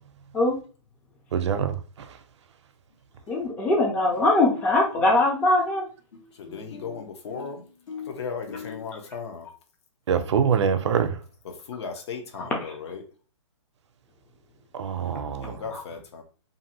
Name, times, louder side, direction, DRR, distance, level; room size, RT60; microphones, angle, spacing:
voice 1, 1.3-2.2 10.1-11.2 14.7-15.6, right 7 dB, 60° right, 0.5 m, -25 dB
sound 1, 2.9-3.0 3.3-3.9 4.1-8.9, left 6 dB, 75° left, 1.3 m, -43 dB
voice 2, 3.3-5.8 12.6-12.7 15.7-15.8, left 2 dB, 10° left, 0.4 m, -22 dB
voice 3, 6.3-7.7 8.0-9.5 11.4-13.0 15.4-16.2, left 5 dB, 55° left, 0.7 m, -36 dB
2.6 x 2.5 x 2.7 m
hypercardioid pair, 150°, 16 cm